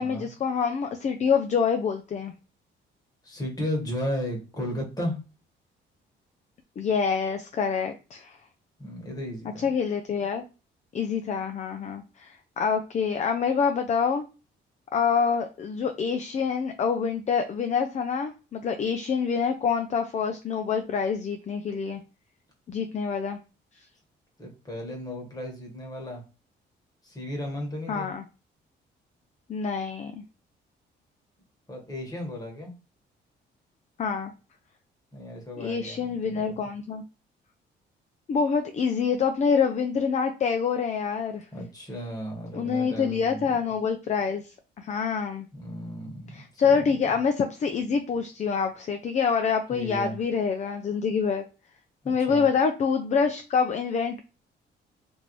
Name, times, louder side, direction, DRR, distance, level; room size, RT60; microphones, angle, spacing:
voice 1, 0.0-2.3 6.8-8.4 9.6-10.4 10.9-14.2 14.9-22.0 22.7-23.4 27.9-28.2 29.5-30.2 34.0-34.3 35.6-37.0 38.3-41.5 42.5-45.5 46.3-51.4 52.1-54.2, left 6 dB, 35° left, 7 dB, 0.4 m, -26 dB
voice 2, 3.2-5.2 8.8-9.7 24.4-26.2 27.0-28.1 31.7-32.7 35.1-36.7 41.5-43.6 45.5-46.8 49.7-50.2 52.0-52.5, equal, 20° left, 0 dB, 1.3 m, -35 dB
3.1 x 2.6 x 3.0 m, 0.32 s
cardioid pair, 90°, 20 cm